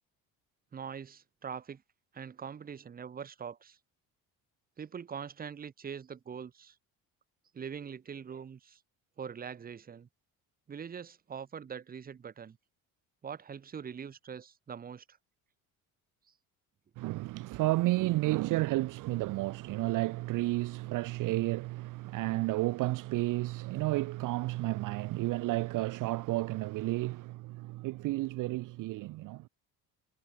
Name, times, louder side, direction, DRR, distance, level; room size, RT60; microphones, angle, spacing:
voice 1, 0.7-1.8 2.1-3.8 4.8-6.7 7.5-8.8 9.2-10.1 10.7-12.6 13.2-15.2, right 7 dB, 25° right, 1.0 m, -43 dB
voice 2, 17.0-29.5, right 19 dB, 60° right, 0.6 m, -32 dB
cardioid pair, 125°, 35 cm